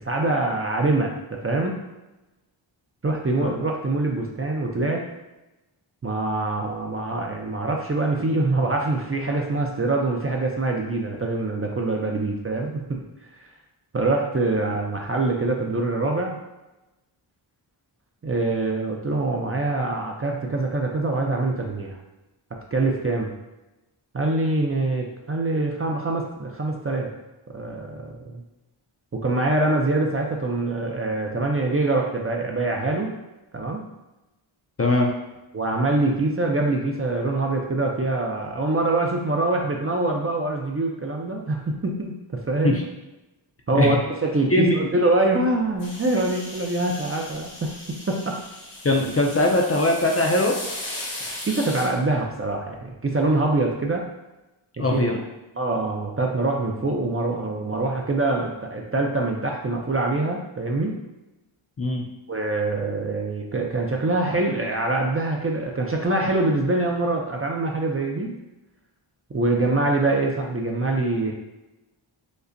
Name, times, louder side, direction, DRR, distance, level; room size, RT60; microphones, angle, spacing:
voice 1, 0.0-1.7 3.0-5.0 6.0-13.0 13.9-16.4 18.2-22.0 22.7-23.3 24.1-27.1 27.5-28.4 29.1-33.1 33.5-33.8 35.5-42.2 42.5-42.8 43.7-47.7 48.1-48.4 51.4-54.0 54.8-55.1 55.6-60.9 62.3-68.3 69.3-71.3, right 2 dB, 30° right, 0 dB, 0.4 m, -24 dB
voice 2, 34.8-35.1 42.6-42.8 43.7-44.0 44.5-44.8 48.8-50.6 54.8-55.2 61.8-62.0 69.6-69.7, left 2 dB, 30° left, 0 dB, 0.4 m, -21 dB
sound 1, 45.8-51.9, left 1 dB, 80° left, 1.2 m, -37 dB
5.2 x 2.1 x 2.5 m, 1.0 s
wide cardioid pair, 80°, 48 cm